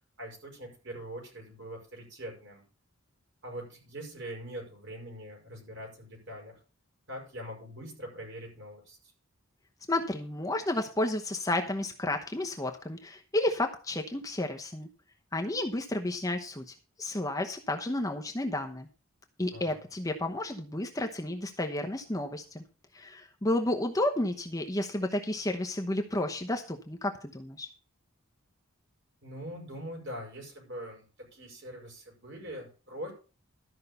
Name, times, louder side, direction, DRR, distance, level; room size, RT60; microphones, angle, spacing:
voice 1, 0.2-2.6 3.4-6.6 7.1-9.0 19.5-19.8 29.2-33.1, equal, 55° right, 0 dB, 5.6 m, -43 dB
voice 2, 9.9-14.9 15.3-18.9 19.4-22.6 22.9-27.7, left 1 dB, 15° left, 4 dB, 0.9 m, -31 dB
13.0 x 5.6 x 6.8 m, 0.36 s
head